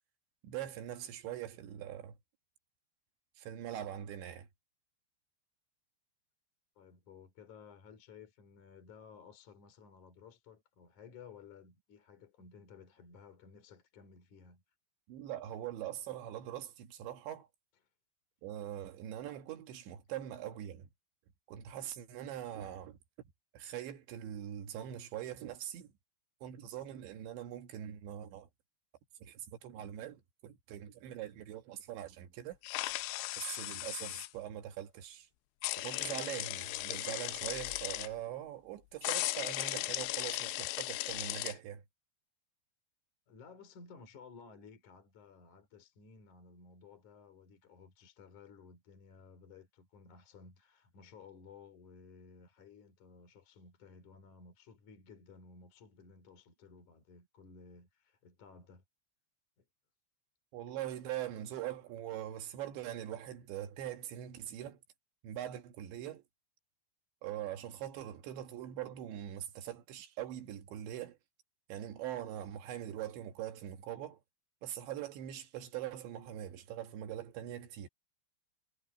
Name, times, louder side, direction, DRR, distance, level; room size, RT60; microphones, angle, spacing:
voice 1, 0.4-2.2 3.4-4.5 15.1-17.5 18.4-20.9 21.5-23.0 23.5-25.9 26.4-28.5 29.2-32.6 33.4-35.3 35.8-41.8 60.5-64.8 65.2-66.2 67.2-71.2 71.7-74.2 74.6-77.9, right 11 dB, 70° right, 3.6 m, -42 dB
voice 2, 6.8-14.6 43.3-58.8 59.6-59.7, left 5 dB, 40° left, 4.3 m, -56 dB
sound 1, 32.6-34.3 35.6-38.1 39.0-41.5, left 20 dB, 85° left, 2.7 m, -37 dB
omnidirectional pair, 5.7 m